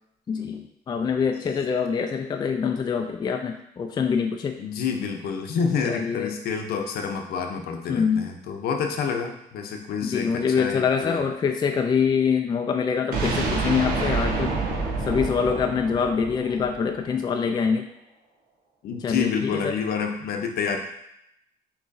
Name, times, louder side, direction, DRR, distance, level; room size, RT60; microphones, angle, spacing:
voice 1, 0.3-4.5 5.8-6.3 7.9-8.3 10.0-14.5 15.1-17.8 19.0-19.7, left 6 dB, 25° left, 4 dB, 0.3 m, -25 dB
voice 2, 4.6-11.2 18.8-20.8, left 6 dB, 65° left, 4 dB, 0.7 m, -28 dB
sound 1, 13.1-17.1, right 3 dB, 60° right, 1.1 m, -27 dB
6.3 x 3.0 x 2.6 m, 0.80 s
cardioid pair, 110°, 17 cm